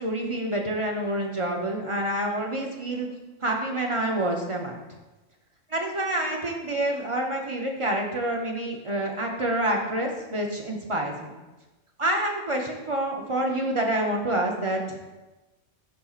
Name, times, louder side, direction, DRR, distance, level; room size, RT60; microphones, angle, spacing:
voice 1, 0.0-3.1 3.4-4.8 5.7-11.4 12.0-15.0, right 1 dB, 35° right, 0 dB, 0.6 m, -27 dB
12.0 x 4.2 x 2.4 m, 1.1 s
omnidirectional pair, 1.3 m